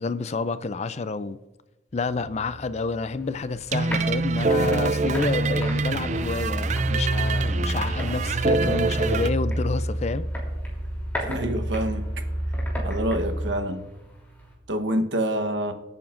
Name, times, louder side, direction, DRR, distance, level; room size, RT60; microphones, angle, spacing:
voice 1, 0.0-1.4 1.9-10.3, left 4 dB, 35° left, 0.4 m, -29 dB
sound 1, 1.9-13.5, equal, 85° left, 3.5 m, -30 dB
sound 2, 3.1-14.5, left 1 dB, 10° left, 3.1 m, -40 dB
sound 3, 3.7-9.3, right 4 dB, 40° right, 0.4 m, -25 dB
voice 2, 11.2-12.1 12.8-13.9 14.7-15.7, right 1 dB, 80° right, 1.1 m, -27 dB
23.0 x 8.9 x 2.5 m
head